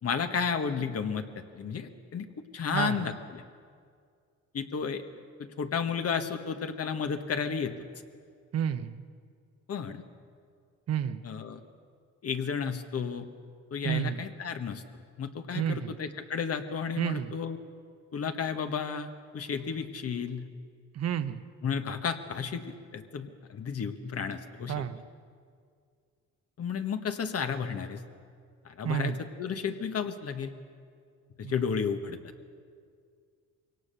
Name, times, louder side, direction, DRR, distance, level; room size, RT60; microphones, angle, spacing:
voice 1, 0.0-2.3 2.5-3.4 4.5-5.0 5.4-7.7 9.7-10.0 11.2-11.6 12.2-13.3 13.7-17.6 18.1-20.5 21.6-22.6 22.9-24.8 26.6-28.0 28.6-30.5 31.4-32.2, left 6 dB, 50° left, 8 dB, 1.5 m, -32 dB
voice 2, 2.7-3.1 8.5-9.0 10.9-11.2 13.8-14.2 15.5-15.9 17.0-17.3 20.9-21.4 24.7-25.0 28.8-29.2 31.4-31.5, right 9 dB, 55° right, 11 dB, 0.9 m, -30 dB
22.5 x 18.0 x 6.9 m, 2.2 s
cardioid pair, 90°, 30 cm